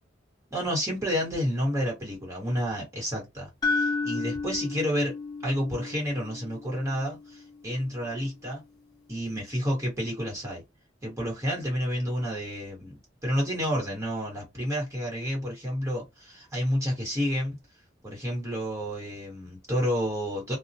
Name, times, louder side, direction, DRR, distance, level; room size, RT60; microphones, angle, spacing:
voice 1, 0.5-5.1 5.4-8.6 9.1-10.6 11.0-17.6 18.0-20.6, equal, 15° right, 1.2 m, -30 dB
sound 1, 3.6-7.7, left 3 dB, 20° left, 0.4 m, -32 dB
2.2 x 2.1 x 2.7 m
head